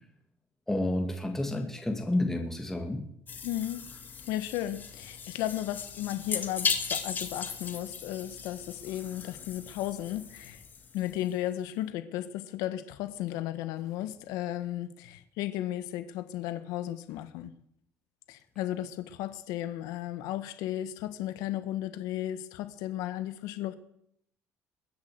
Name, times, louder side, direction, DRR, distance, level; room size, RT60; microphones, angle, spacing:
voice 1, 0.7-3.1, left 1 dB, 5° left, 2 dB, 2.3 m, -30 dB
sound 1, 3.3-11.4, left 6 dB, 30° left, 2.3 m, -37 dB
voice 2, 3.4-3.9 4.3-10.6 10.9-17.5 18.3-23.7, left 13 dB, 85° left, 11 dB, 1.4 m, -34 dB
21.0 x 8.5 x 7.8 m, 0.72 s
cardioid pair, 135°, 6 cm